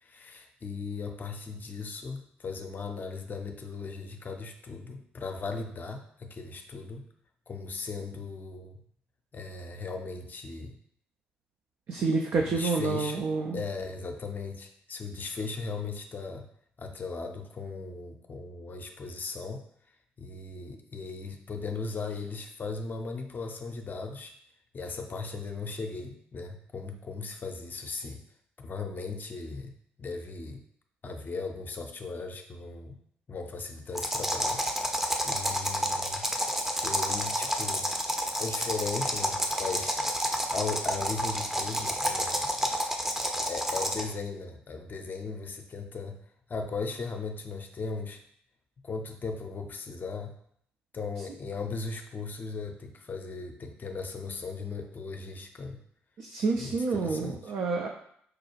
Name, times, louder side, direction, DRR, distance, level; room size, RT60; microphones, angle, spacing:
voice 1, 0.0-7.0 7.5-8.8 9.3-10.8 12.3-13.3 13.5-16.5 16.8-19.6 20.2-24.3 24.7-28.2 28.6-30.6 31.0-32.9 33.3-34.6 35.2-36.3 36.8-37.9 38.4-40.0 40.5-42.5 43.5-46.2 46.5-48.2 48.8-50.4 50.9-55.8 56.6-57.5, left 4 dB, 35° left, 5 dB, 0.6 m, -37 dB
voice 2, 11.9-13.6 56.2-57.9, right 4 dB, 50° right, 1 dB, 0.4 m, -28 dB
sound 1, 33.9-44.1, equal, 5° right, 0.6 m, -30 dB
4.8 x 2.3 x 3.0 m, 0.68 s
figure-of-eight pair, 45°, 5 cm